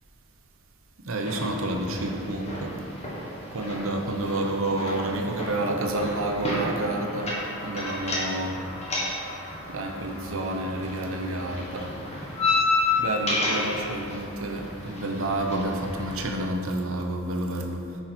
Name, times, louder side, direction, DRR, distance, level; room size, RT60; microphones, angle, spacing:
voice 1, 1.0-2.7 3.5-7.4 7.6-8.6 9.7-12.0 12.9-17.9, right 1 dB, 65° right, 2 dB, 1.0 m, -29 dB
sound 1, 1.3-16.3, left 2 dB, 30° left, 1.5 m, -31 dB
9.4 x 5.9 x 4.5 m, 2.5 s
head